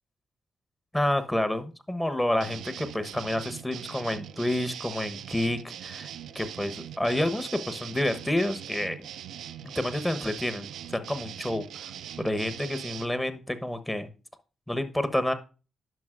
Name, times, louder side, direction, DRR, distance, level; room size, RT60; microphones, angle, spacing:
voice 1, 0.9-6.1 6.3-9.1 9.6-11.9 12.2-14.1 14.7-15.3, left 1 dB, 15° left, 11 dB, 1.0 m, -29 dB
sound 1, 2.4-13.1, right 10 dB, 70° right, 0.3 m, -41 dB
10.5 x 5.7 x 2.5 m, 0.34 s
hypercardioid pair, 40°, 0 cm